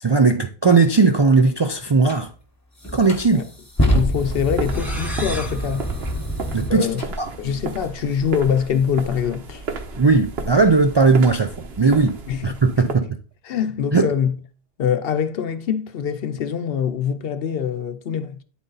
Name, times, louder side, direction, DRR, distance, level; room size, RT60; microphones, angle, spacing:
voice 1, 0.0-2.3 2.9-3.5 6.5-6.9 7.2-7.3 9.9-13.2 13.9-14.1, right 4 dB, 45° right, 0.3 m, -17 dB
sound 1, 2.1-2.2 2.8-7.1, equal, 15° left, 1.1 m, -25 dB
voice 2, 3.9-5.9 6.7-7.0 7.4-9.7 12.3-12.4 12.8-12.9 13.5-14.3 14.8-18.4, left 8 dB, 70° left, 0.8 m, -24 dB
sound 2, 4.1-12.9, right 4 dB, 80° right, 1.1 m, -33 dB
sound 3, 4.6-7.2, equal, ahead, 0.8 m, -37 dB
8.8 x 4.0 x 3.8 m
omnidirectional pair, 1.0 m